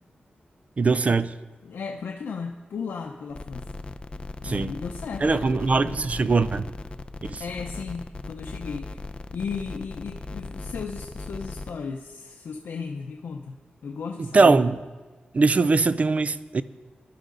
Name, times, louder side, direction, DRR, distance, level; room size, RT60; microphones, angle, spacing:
voice 1, 0.8-1.3 4.4-4.7 5.2-6.7 7.3-7.4 14.2-14.8 15.3-16.6, right 3 dB, 40° right, 15 dB, 0.4 m, -21 dB
voice 2, 1.6-3.7 4.4-6.3 7.4-9.0 9.3-13.6 13.8-14.6, left 5 dB, 90° left, 2 dB, 0.7 m, -35 dB
sound 1, 3.3-11.7, left 3 dB, 30° left, 0.6 m, -38 dB
18.5 x 11.0 x 3.9 m, 1.3 s
wide cardioid pair, 110°, 3 cm